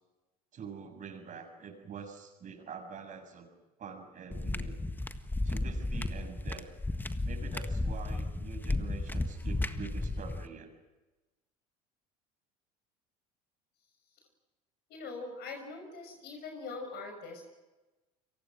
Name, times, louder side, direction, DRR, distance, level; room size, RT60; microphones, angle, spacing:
voice 1, 0.5-3.5 3.8-4.8 5.4-6.7 7.2-10.7, right 6 dB, 40° right, 4 dB, 6.9 m, -45 dB
sound 1, 4.3-10.5, left 2 dB, 10° left, 1.6 m, -34 dB
voice 2, 14.9-17.4, left 3 dB, 55° left, 4 dB, 5.9 m, -42 dB
29.5 x 23.5 x 6.4 m, 1.1 s
hypercardioid pair, 80°, 20 cm